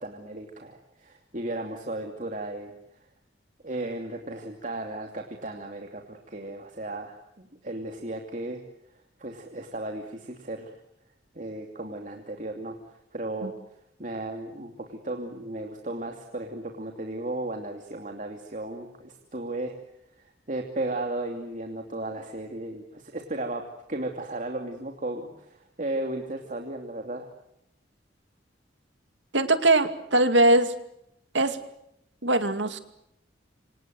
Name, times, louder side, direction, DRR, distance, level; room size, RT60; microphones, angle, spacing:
voice 1, 0.0-2.7 3.6-8.6 9.2-10.7 11.3-13.5 14.0-19.8 20.2-23.6 23.9-27.3, right 2 dB, 45° right, 3 dB, 2.8 m, -35 dB
voice 2, 29.3-30.7 31.3-31.6 32.2-32.8, right 2 dB, 75° right, 9 dB, 2.5 m, -21 dB
28.0 x 26.5 x 7.8 m, 0.78 s
head